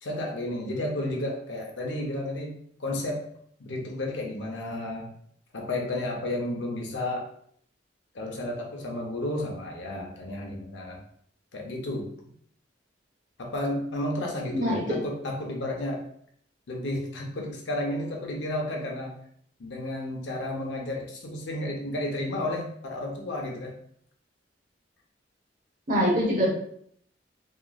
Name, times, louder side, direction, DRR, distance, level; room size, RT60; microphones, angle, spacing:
voice 1, 0.0-2.5 2.8-3.2 3.6-5.1 5.5-7.3 8.1-11.0 11.5-12.1 13.4-16.0 16.7-19.1 19.6-23.8, left 1 dB, 70° left, 0 dB, 0.6 m, -32 dB
voice 2, 14.5-15.0 25.9-26.5, equal, 50° right, -2 dB, 0.8 m, -24 dB
2.9 x 2.4 x 2.3 m, 0.65 s
head